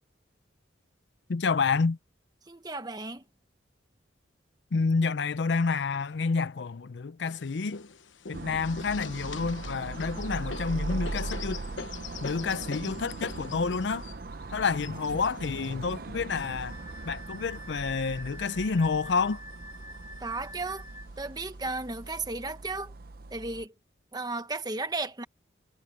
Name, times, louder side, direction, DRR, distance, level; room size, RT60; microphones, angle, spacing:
voice 1, 1.3-2.0 4.7-7.8 8.3-11.6 12.2-14.1 14.5-16.8 17.0-19.4, left 4 dB, 65° left, 0.5 m, -29 dB
voice 2, 2.5-3.2 20.2-20.8 21.2-22.9 23.3-23.7 24.1-25.2, right 3 dB, 20° right, 1.3 m, -34 dB
sound 1, 7.2-17.5 18.2-19.1 19.5-19.6 19.9-20.6 21.4-21.5 22.1-22.5, left 5 dB, 90° left, 1.0 m, -44 dB
sound 2, 8.3-23.7, right 2 dB, 50° right, 0.7 m, -40 dB
Wind instrument woodwind instrument, 16.3-21.1, left 1 dB, 45° left, 3.5 m, -47 dB
head